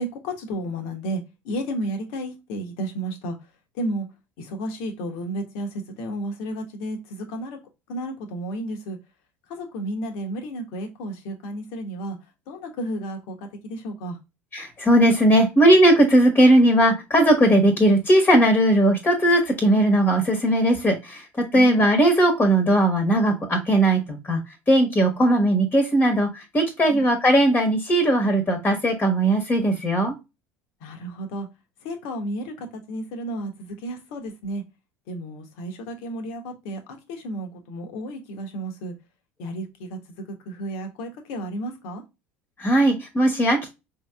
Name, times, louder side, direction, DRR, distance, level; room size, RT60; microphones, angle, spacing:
voice 1, 0.0-3.4 3.7-4.1 4.4-7.6 7.9-9.0 9.5-12.2 12.5-14.2 21.5-21.8 26.9-27.0 30.8-31.5 31.8-34.6 35.1-36.8 37.1-38.9 39.4-40.0 40.3-42.0, right 1 dB, 65° left, 1.1 m, -32 dB
voice 2, 14.5-21.2 21.5-24.4 24.7-30.1 42.6-43.7, right 1 dB, 25° left, 1.3 m, -18 dB
4.9 x 2.8 x 2.3 m
hypercardioid pair, 70°, 7 cm